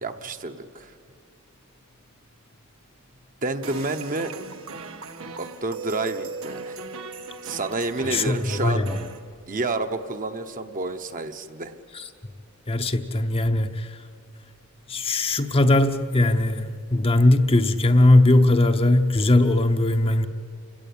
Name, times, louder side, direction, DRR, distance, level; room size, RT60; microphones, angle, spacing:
voice 1, 0.0-0.9 3.4-4.3 5.4-6.8 7.4-8.9 9.5-11.7, right 3 dB, 40° right, 1.0 m, -29 dB
sound 1, 3.6-9.2, right 4 dB, 70° right, 1.5 m, -38 dB
voice 2, 8.0-9.0 11.9-12.0 12.7-14.0 14.9-20.3, left 1 dB, 25° left, 0.8 m, -20 dB
28.5 x 17.5 x 8.6 m
head